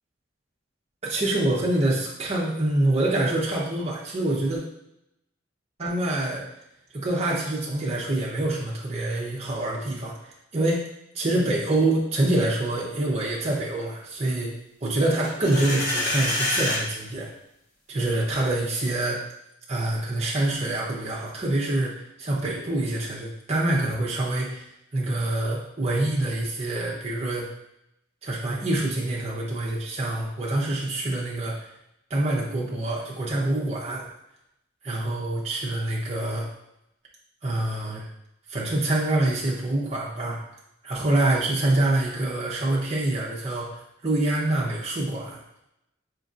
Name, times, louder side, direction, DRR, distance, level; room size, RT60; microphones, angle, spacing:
voice 1, 1.0-4.6 5.8-6.5 6.9-10.1 10.5-10.8 11.1-14.5 14.8-17.3 17.9-19.2 19.7-21.9 22.2-24.6 24.9-27.5 28.2-31.7 32.1-34.0 34.8-36.5 37.4-38.0 38.5-40.4 40.8-45.4, right 1 dB, 35° right, -4 dB, 0.8 m, -26 dB
sound 1, 15.2-16.8, left 1 dB, 45° left, 1.5 m, -26 dB
4.5 x 2.9 x 2.5 m, 0.81 s
head